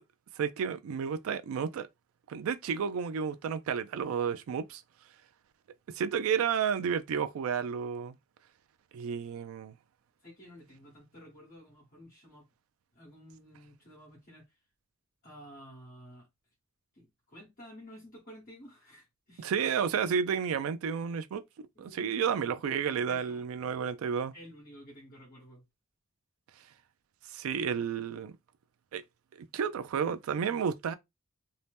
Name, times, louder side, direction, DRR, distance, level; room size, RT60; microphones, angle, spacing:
voice 1, 0.4-1.9 2.3-4.8 5.9-8.2 8.9-9.7 19.4-24.3 27.3-28.4 28.9-29.0 29.5-30.9, right 7 dB, 90° right, 0.3 m, -31 dB
voice 2, 10.2-12.4 12.9-14.4 15.2-16.3 16.9-19.5 21.7-22.5 23.1-23.4 24.3-25.6, equal, 45° left, 1.1 m, -52 dB
2.7 x 2.0 x 3.3 m
head